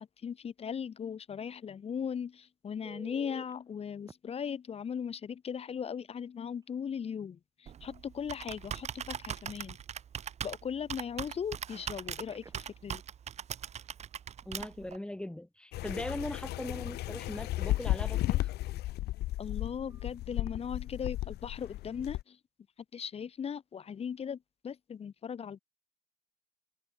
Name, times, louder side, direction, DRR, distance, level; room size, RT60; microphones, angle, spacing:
voice 1, 0.0-9.8 10.4-13.0 19.4-22.4 22.9-25.6, left 7 dB, 35° left, 1.3 m, -38 dB
Telephone, 2.8-3.5 4.1-4.2 5.9-6.1 6.5-6.7 11.9-12.8 19.9-20.1, right 4 dB, 20° right, 1.7 m, -51 dB
Computer keyboard, 7.7-15.0, right 8 dB, 40° right, 0.8 m, -41 dB
voice 2, 14.4-18.5, left 1 dB, 5° left, 3.4 m, -40 dB
sound 1, 15.7-22.2, left 16 dB, 75° left, 1.0 m, -34 dB
cardioid pair, 110°, 17 cm